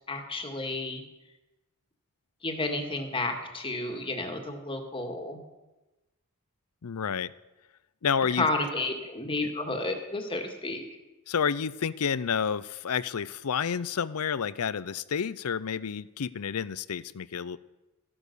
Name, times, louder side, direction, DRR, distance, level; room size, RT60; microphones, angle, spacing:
voice 1, 0.1-1.0 2.4-5.4 8.3-10.9, left 2 dB, 25° left, 4 dB, 1.9 m, -31 dB
voice 2, 6.8-7.3 8.0-8.5 11.3-17.6, left 7 dB, 75° left, 18 dB, 0.5 m, -30 dB
14.5 x 11.0 x 6.9 m, 1.1 s
head